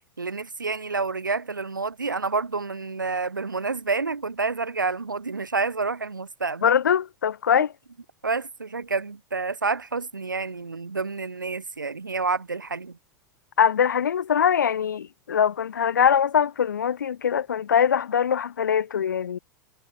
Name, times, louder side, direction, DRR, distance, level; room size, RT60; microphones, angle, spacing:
voice 1, 0.2-6.7 7.5-7.6 8.2-13.0, right 4 dB, 90° right, 0.4 m, -29 dB
voice 2, 6.6-7.7 13.6-19.4, left 8 dB, 75° left, 0.5 m, -22 dB
figure-of-eight pair, 90°, 10 cm